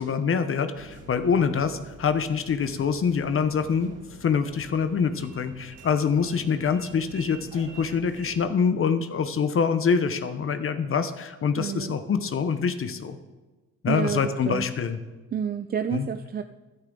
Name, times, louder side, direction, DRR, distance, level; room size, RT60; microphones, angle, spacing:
voice 1, 0.0-3.9 4.2-13.2 13.8-15.0 15.9-16.1, left 6 dB, 45° left, 10 dB, 0.9 m, -25 dB
sound 1, 0.7-8.4, right 3 dB, 80° right, 2.4 m, -47 dB
voice 2, 11.6-12.0 13.9-14.7 15.3-16.4, right 8 dB, 30° right, 9 dB, 0.4 m, -29 dB
15.0 x 10.5 x 3.9 m, 1.2 s
cardioid pair, 90°, 30 cm